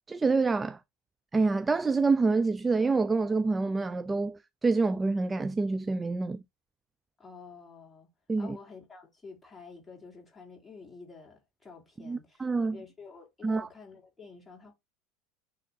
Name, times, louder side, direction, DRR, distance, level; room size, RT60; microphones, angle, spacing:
voice 1, 0.1-0.8 1.3-6.4 8.3-8.6 12.1-12.8 13.4-13.7, right 3 dB, 20° right, 0.4 m, -27 dB
voice 2, 7.2-8.1 8.4-14.7, left 5 dB, 15° left, 4.2 m, -49 dB
9.2 x 3.6 x 2.8 m
hypercardioid pair, 80°, 0 cm